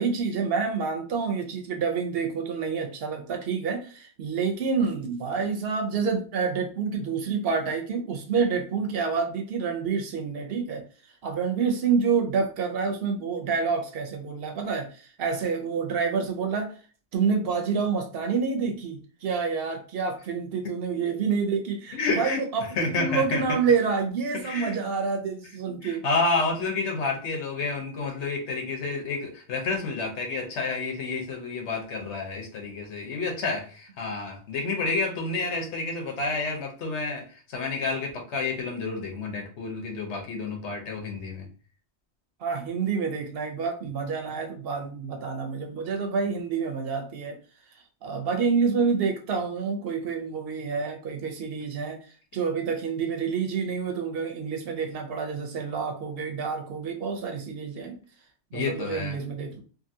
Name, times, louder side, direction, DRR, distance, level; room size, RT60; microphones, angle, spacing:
voice 1, 0.0-10.8 11.2-16.7 17.1-26.0 35.4-35.7 42.4-47.4 48.0-58.0 58.5-59.6, right 5 dB, 65° right, 0.8 m, -28 dB
voice 2, 21.9-22.4 22.8-23.4 24.4-24.8 25.8-41.5 58.5-59.2, left 3 dB, 80° left, 1.1 m, -29 dB
2.6 x 2.6 x 2.6 m
omnidirectional pair, 1.2 m